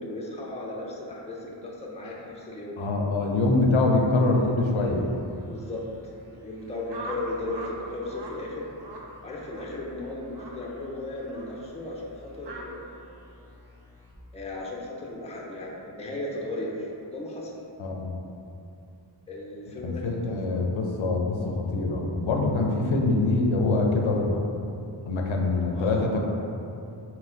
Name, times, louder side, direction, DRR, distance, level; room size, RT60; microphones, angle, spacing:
voice 1, 0.0-2.8 5.4-8.7 9.2-12.9 14.3-17.5 19.3-20.6 25.7-26.0, left 2 dB, 15° left, -3 dB, 0.5 m, -36 dB
voice 2, 2.8-5.1 17.8-18.2 19.8-24.4 25.0-26.2, left 2 dB, 75° left, 0 dB, 0.6 m, -24 dB
sound 1, 4.8-15.1, left 1 dB, 30° right, 0.9 m, -52 dB
sound 2, 6.9-7.8 8.0-8.4 8.8-9.1 9.5-9.7 10.3-10.6 11.3-11.5 12.4-12.6, right 3 dB, 60° right, 0.6 m, -40 dB
4.2 x 2.2 x 3.7 m, 2.7 s
wide cardioid pair, 50°, 47 cm